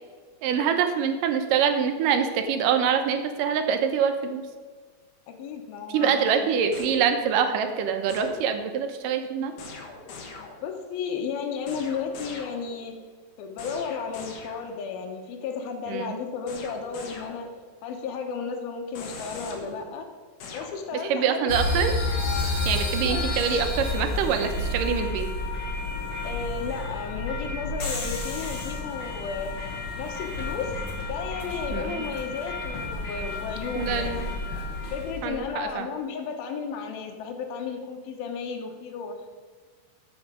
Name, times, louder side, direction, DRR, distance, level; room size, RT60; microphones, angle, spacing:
voice 1, 0.4-4.4 5.9-9.5 15.9-16.2 21.1-21.9 22.7-25.3 31.7-32.1 33.8-34.3 35.2-35.9, right 7 dB, 75° right, 7 dB, 2.4 m, -25 dB
voice 2, 5.3-6.3 10.4-13.0 13.4-17.5 17.8-20.1 20.5-21.5 23.0-23.3 26.2-29.5 29.9-34.3 34.9-39.2, left 5 dB, 85° left, 4 dB, 3.0 m, -33 dB
sound 1, 6.7-7.5 8.1-8.9 9.6-10.8 11.7-13.0 13.6-14.9 16.5-17.8 19.0-21.2 22.3-23.0 23.4-23.9, left 4 dB, 65° left, 2.8 m, -42 dB
sound 2, 21.5-35.4, left 2 dB, 45° left, 2.4 m, -30 dB
13.0 x 6.4 x 5.0 m, 1.5 s
omnidirectional pair, 4.1 m